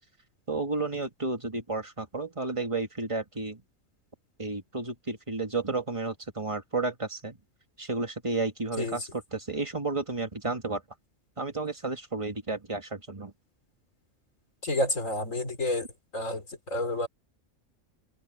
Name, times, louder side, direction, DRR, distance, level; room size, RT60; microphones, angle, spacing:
voice 1, 0.5-3.6 4.4-7.4 7.8-10.8 11.4-13.3, right 3 dB, 25° right, 1.9 m, -32 dB
voice 2, 14.6-15.9 16.1-17.1, left 1 dB, 90° left, 4.5 m, -29 dB
omnidirectional pair, 1.3 m